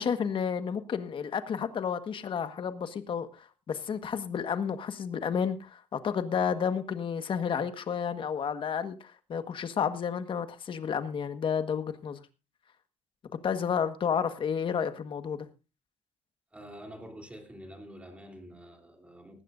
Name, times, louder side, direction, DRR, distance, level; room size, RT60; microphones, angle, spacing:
voice 1, 0.0-12.2 13.4-15.5, left 7 dB, 40° left, 1.5 m, -31 dB
voice 2, 16.5-19.4, equal, 10° right, 3.5 m, -47 dB
19.0 x 15.5 x 2.6 m
cardioid pair, 145°, 13 cm